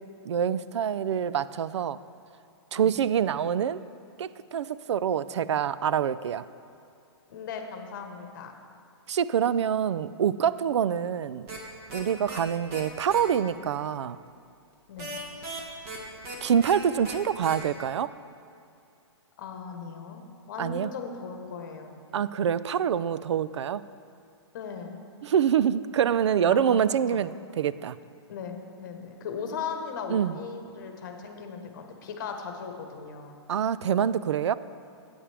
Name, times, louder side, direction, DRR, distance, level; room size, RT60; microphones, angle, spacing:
voice 1, 0.2-2.0 2.7-3.8 4.2-6.4 9.1-11.5 11.9-14.2 16.4-18.1 20.6-20.9 22.1-23.8 25.2-28.0 30.1-30.4 33.5-34.5, right 8 dB, 75° right, 16 dB, 0.4 m, -26 dB
voice 2, 7.3-8.6 14.9-15.1 19.4-22.0 24.5-25.0 26.4-27.3 28.3-33.4, left 6 dB, 40° left, 4 dB, 1.2 m, -38 dB
sound 1, 11.5-11.6 11.9-12.0 12.3-12.4 12.7-12.8 13.1-13.2 15.0-16.0 16.2-16.3 16.6-16.7 17.0-17.1 17.4-17.5, right 2 dB, 25° right, 1.5 m, -37 dB
13.5 x 8.8 x 3.4 m, 2.6 s
hypercardioid pair, 165°, 15 cm